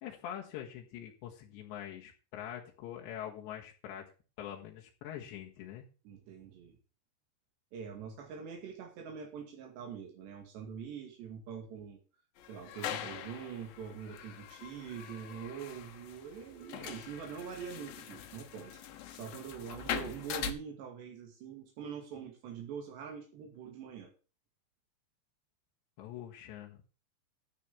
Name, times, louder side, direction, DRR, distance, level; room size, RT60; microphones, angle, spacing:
voice 1, 0.0-4.1 4.4-5.9 26.0-26.9, left 10 dB, 90° left, -1 dB, 3.9 m, -44 dB
voice 2, 6.1-6.8 7.7-12.0 12.5-24.1, right 7 dB, 75° right, 2 dB, 4.2 m, -44 dB
sound 1, 12.4-20.5, left 9 dB, 65° left, 2.8 m, -42 dB
13.0 x 5.1 x 8.5 m, 0.36 s
omnidirectional pair, 5.0 m